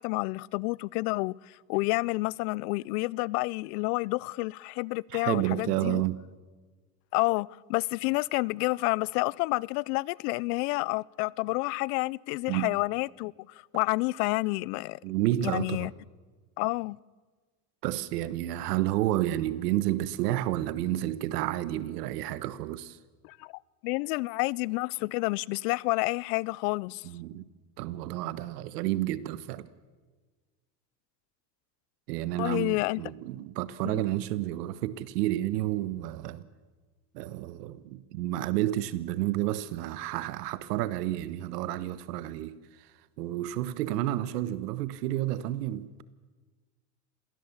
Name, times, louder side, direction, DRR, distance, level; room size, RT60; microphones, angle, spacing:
voice 1, 0.0-6.0 7.1-13.3 13.7-15.0 15.5-15.9 16.6-17.0 23.2-23.5 23.8-27.0 32.4-33.0 33.8-34.0, left 24 dB, 75° left, 0.6 m, -29 dB
voice 2, 5.1-6.2 12.5-12.7 15.0-15.9 17.8-23.0 27.0-27.5 27.8-29.7 32.1-36.5 37.1-46.0, right 14 dB, 85° right, 1.3 m, -30 dB
27.0 x 18.0 x 7.2 m
supercardioid pair, 105°, 46 cm